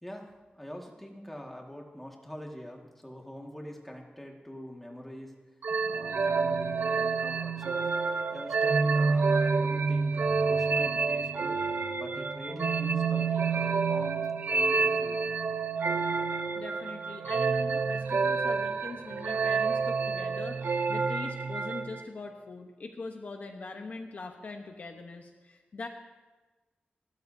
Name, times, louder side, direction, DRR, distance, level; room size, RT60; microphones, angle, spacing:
voice 1, 0.0-5.3 5.9-11.6 12.0-14.3 14.5-15.3, equal, 5° left, 0 dB, 1.8 m, -44 dB
sound 1, 5.6-22.0, right 4 dB, 70° right, 0.7 m, -28 dB
voice 2, 16.5-25.9, left 3 dB, 50° left, 3 dB, 1.0 m, -42 dB
29.0 x 12.5 x 2.7 m, 1.3 s
wide cardioid pair, 165°, 3 cm